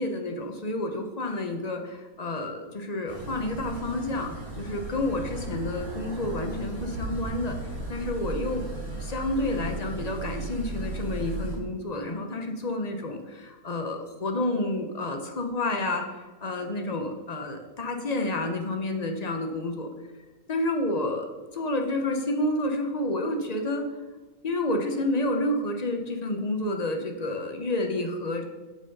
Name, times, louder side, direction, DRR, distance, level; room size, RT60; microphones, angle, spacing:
voice 1, 0.0-4.3 4.6-7.5 7.9-8.6 9.0-19.9 20.5-21.3 21.5-23.8 24.4-28.4, left 1 dB, 40° left, 4 dB, 0.6 m, -29 dB
sound 1, 3.1-11.6, right 2 dB, 60° right, 3.5 m, -36 dB
6.3 x 6.2 x 5.3 m, 1.2 s
omnidirectional pair, 1.7 m